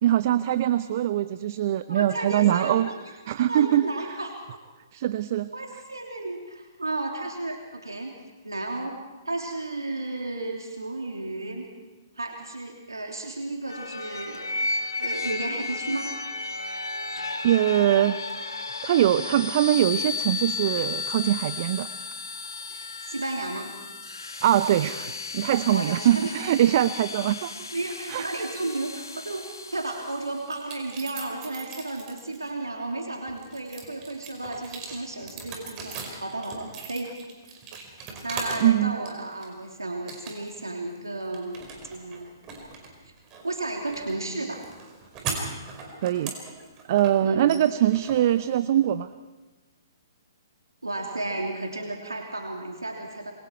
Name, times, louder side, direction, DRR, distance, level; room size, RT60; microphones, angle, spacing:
voice 1, 0.0-2.9 3.3-3.9 4.9-5.5 17.4-18.2 18.8-21.9 24.4-27.5 28.1-28.3 38.6-39.0 46.0-46.3 46.9-49.1, right 12 dB, 45° right, 13 dB, 0.7 m, -22 dB
voice 2, 1.9-2.9 3.4-4.6 5.5-8.1 8.4-9.0 9.2-11.7 12.2-14.5 15.0-16.1 22.7-23.7 25.7-26.3 27.7-29.4 29.7-37.1 38.2-42.3 43.4-44.6 47.2-47.5 50.8-53.3, right 2 dB, 85° right, 1 dB, 3.0 m, -33 dB
sound 1, 13.7-30.4, left 3 dB, 80° left, 1.8 m, -34 dB
sound 2, 30.5-32.5 33.0-38.7 39.1-39.7 40.1-40.7 41.0-48.9, right 4 dB, 25° right, 4.8 m, -39 dB
27.5 x 22.5 x 4.6 m, 1.2 s
figure-of-eight pair, 125°, 2 cm